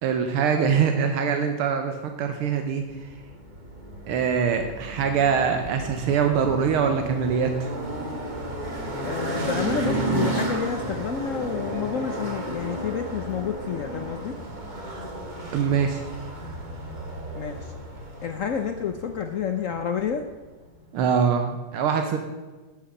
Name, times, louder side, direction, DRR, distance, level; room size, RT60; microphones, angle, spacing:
voice 1, 0.0-3.1 4.1-7.7 15.5-16.0 20.9-22.2, right 6 dB, 85° right, 5 dB, 1.8 m, -23 dB
sound 1, 2.9-20.3, right 2 dB, 20° right, 1.7 m, -33 dB
voice 2, 9.0-14.3 17.3-17.7 18.2-20.3, left 7 dB, 85° left, 6 dB, 0.7 m, -29 dB
12.5 x 7.0 x 6.6 m, 1.3 s
omnidirectional pair, 2.3 m